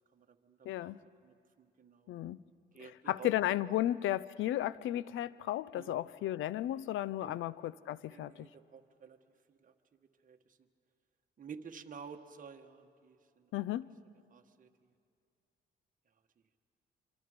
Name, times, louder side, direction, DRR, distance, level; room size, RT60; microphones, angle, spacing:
voice 1, 0.1-0.9 1.2-2.1 2.7-3.3 3.6-3.8 5.7-6.1 7.2-7.4 8.0-9.2 9.5-10.6 11.4-13.5 14.3-14.9, right 6 dB, 40° right, 4 dB, 1.5 m, -52 dB
voice 2, 0.6-1.0 2.1-2.4 2.8-8.5 13.5-13.9, left 13 dB, 80° left, 19 dB, 0.5 m, -34 dB
25.5 x 25.5 x 5.1 m, 2.4 s
cardioid pair, 90°, 20 cm